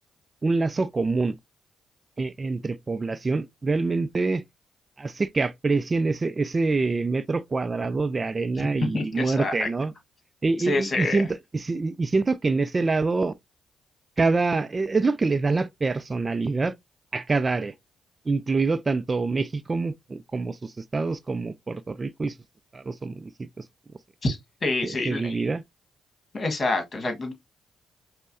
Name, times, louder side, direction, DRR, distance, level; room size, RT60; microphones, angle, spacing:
voice 1, 0.4-1.4 2.2-4.4 5.0-9.9 10.4-13.4 14.2-16.7 17.1-17.7 18.3-22.4 22.7-23.6 24.8-25.6, right 3 dB, 35° right, 0.3 m, -26 dB
voice 2, 8.9-9.7 10.7-11.2 24.2-25.4 26.3-27.3, left 2 dB, 45° left, 1.5 m, -27 dB
5.3 x 2.1 x 2.6 m
hypercardioid pair, 50°, 0 cm